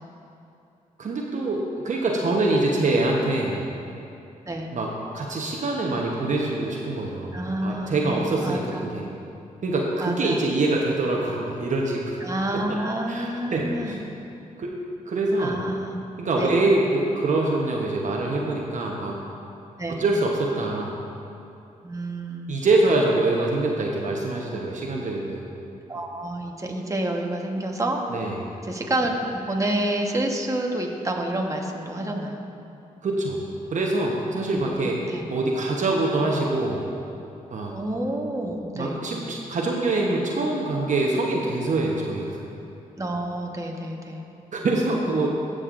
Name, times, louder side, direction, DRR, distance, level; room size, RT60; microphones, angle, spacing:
voice 1, 1.0-3.6 4.7-4.9 5.1-8.7 8.9-9.0 9.6-12.2 12.5-12.6 13.1-14.0 14.6-14.8 15.1-15.6 16.2-19.1 19.9-20.9 22.5-25.5 28.1-28.5 33.0-33.4 33.7-35.0 35.3-36.9 37.5-37.7 38.8-42.4 44.5-45.3, right 2 dB, 55° right, -1 dB, 1.0 m, -24 dB
voice 2, 7.3-8.8 10.0-10.5 12.2-14.0 15.4-15.9 16.4-16.6 19.8-20.0 21.8-22.5 25.9-28.0 28.6-32.4 34.5-34.6 35.1-35.3 37.7-39.0 43.0-44.2, right 1 dB, 20° right, 1 dB, 1.2 m, -28 dB
14.5 x 6.5 x 2.6 m, 2.7 s
supercardioid pair, 50°, 15 cm